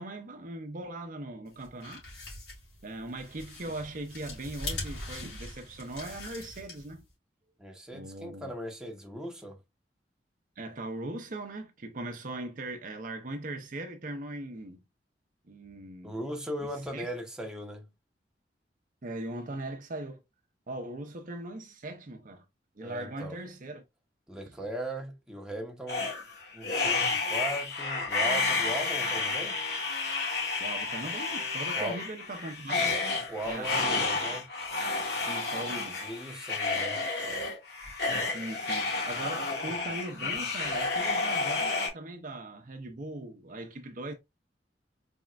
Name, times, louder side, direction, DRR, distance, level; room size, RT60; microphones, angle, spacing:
voice 1, 0.0-2.0 2.8-7.1 7.9-8.5 10.6-14.8 15.5-16.2 16.9-17.1 19.0-20.2 20.7-22.5 22.8-23.8 24.4-24.5 30.6-33.0 33.4-34.2 35.3-36.1 38.2-44.1, right 2 dB, 50° right, 0.7 m, -39 dB
sound 1, 1.5-7.1, left 2 dB, 85° left, 2.7 m, -42 dB
voice 2, 7.6-9.6 16.0-17.9 22.8-23.4 24.3-26.1 26.5-29.6 31.7-32.0 33.3-34.4 36.0-37.0, right 1 dB, 5° right, 0.9 m, -38 dB
sound 2, 25.9-41.9, left 3 dB, 65° left, 1.8 m, -31 dB
4.3 x 3.5 x 2.4 m
head